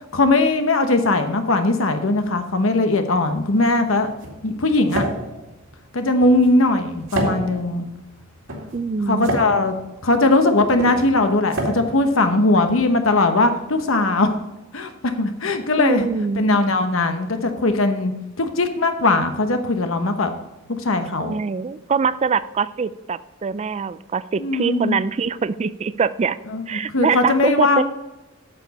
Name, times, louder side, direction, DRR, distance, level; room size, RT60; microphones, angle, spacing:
voice 1, 0.1-4.1 4.4-5.1 5.9-7.9 9.1-9.7 10.0-14.3 14.7-16.1 16.4-18.1 18.4-20.4 20.7-21.4 24.4-25.0 26.5-26.6 26.9-27.8, left 2 dB, 70° left, 7 dB, 1.1 m, -19 dB
sound 1, 3.3-13.1, right 1 dB, 75° right, 2.3 m, -31 dB
voice 2, 8.7-9.4 15.8-16.4 21.2-26.4 26.7-27.8, right 5 dB, 30° right, 16 dB, 0.3 m, -23 dB
8.7 x 7.1 x 4.1 m, 1.0 s
head